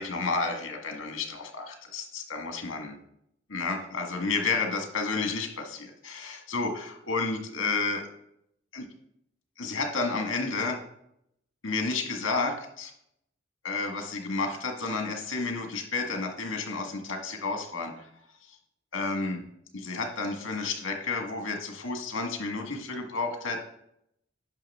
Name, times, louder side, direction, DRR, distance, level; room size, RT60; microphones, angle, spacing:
voice 1, 0.0-2.9 3.5-8.1 8.7-8.9 9.6-10.8 11.6-12.9 13.6-18.1 18.9-19.4 19.7-23.7, left 3 dB, 80° left, 4 dB, 1.6 m, -31 dB
10.5 x 5.9 x 3.5 m, 0.76 s
head